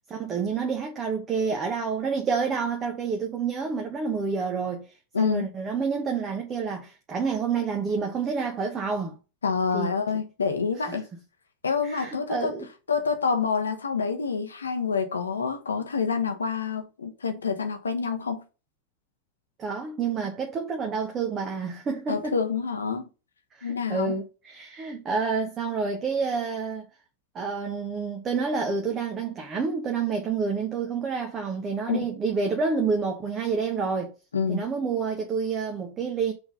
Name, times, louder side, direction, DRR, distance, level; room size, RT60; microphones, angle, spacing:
voice 1, 0.1-9.2 9.7-9.9 10.8-11.0 11.8-12.7 19.6-22.3 23.5-26.9 27.3-34.1 34.5-36.3, right 5 dB, 25° right, 1.1 m, -28 dB
voice 2, 5.1-5.5 9.4-11.1 11.6-12.5 12.9-18.4 22.1-23.0 23.6-24.2 31.9-32.0 34.3-34.6, left 5 dB, 70° left, 1.1 m, -27 dB
6.1 x 3.6 x 5.5 m
figure-of-eight pair, 90°, 0 cm